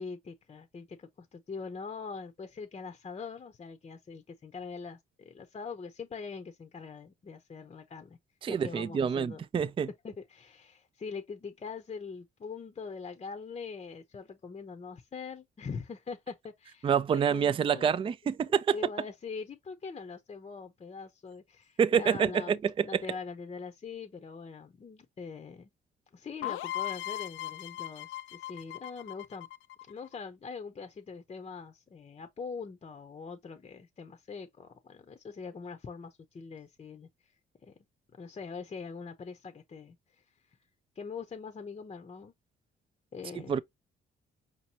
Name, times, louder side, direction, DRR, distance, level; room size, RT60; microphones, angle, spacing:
voice 1, 0.0-8.2 8.5-9.5 10.0-18.0 18.5-22.6 22.8-25.7 26.1-29.5 29.9-37.1 37.6-37.7 38.1-40.0 41.0-42.3 43.1-43.6, left 5 dB, 30° left, 0.7 m, -43 dB
voice 2, 8.4-9.9 16.8-18.7 21.8-23.0 43.5-43.6, right 7 dB, 25° right, 0.3 m, -27 dB
sound 1, 26.4-30.2, left 14 dB, 90° left, 0.5 m, -38 dB
5.1 x 2.8 x 2.8 m
cardioid pair, 90°, 20 cm